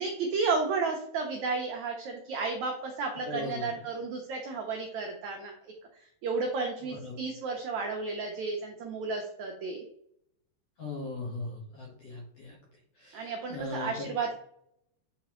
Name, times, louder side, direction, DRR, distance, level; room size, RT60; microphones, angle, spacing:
voice 1, 0.0-5.5 6.2-9.8 13.1-14.4, right 4 dB, 85° right, 1 dB, 1.6 m, -32 dB
voice 2, 3.3-3.8 6.9-7.2 10.8-12.6 13.0-13.9, left 2 dB, 60° left, -2 dB, 1.8 m, -39 dB
8.5 x 4.0 x 3.0 m, 0.72 s
omnidirectional pair, 4.4 m